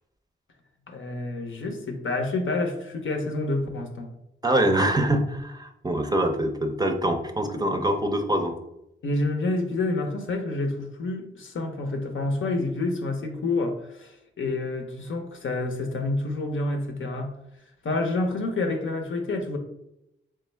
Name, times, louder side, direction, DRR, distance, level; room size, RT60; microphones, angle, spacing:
voice 1, 0.9-4.1 9.0-17.3 17.8-19.6, left 2 dB, 70° left, 3 dB, 0.7 m, -28 dB
voice 2, 4.4-8.6, right 1 dB, 20° right, 5 dB, 0.5 m, -24 dB
3.6 x 3.2 x 3.3 m, 0.86 s
cardioid pair, 60°, 21 cm